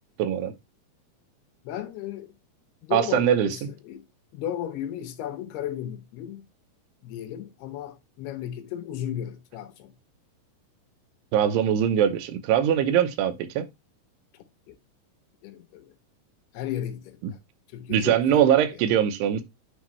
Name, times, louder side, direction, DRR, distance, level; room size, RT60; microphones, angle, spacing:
voice 1, 0.2-0.5 2.9-3.7 11.3-13.7 17.9-19.4, right 9 dB, 90° right, 3.0 m, -22 dB
voice 2, 1.6-2.3 2.8-4.1 4.3-6.5 7.0-9.9 14.3-14.8 15.4-15.9 16.5-17.2 17.7-18.5, left 11 dB, 80° left, 3.0 m, -35 dB
9.6 x 3.7 x 3.0 m
omnidirectional pair, 4.6 m